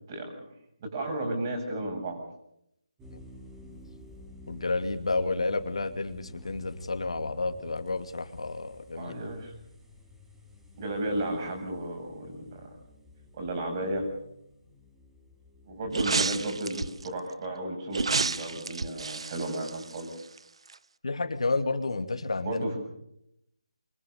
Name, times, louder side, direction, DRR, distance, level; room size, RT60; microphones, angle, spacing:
voice 1, 0.1-0.5 0.8-2.2 8.9-9.5 10.8-12.8 13.3-14.1 15.6-20.1 22.4-22.8, right 1 dB, 30° right, 4 dB, 7.9 m, -33 dB
sound 1, 3.0-16.6, left 1 dB, 10° right, 5.0 m, -52 dB
voice 2, 4.5-9.1 21.0-22.6, left 3 dB, 70° left, 9 dB, 2.6 m, -30 dB
sound 2, 15.9-17.1 17.9-20.4 20.7-20.8, right 4 dB, 60° right, 1.1 m, -30 dB
25.5 x 22.5 x 6.9 m, 0.78 s
figure-of-eight pair, 160°, 3 cm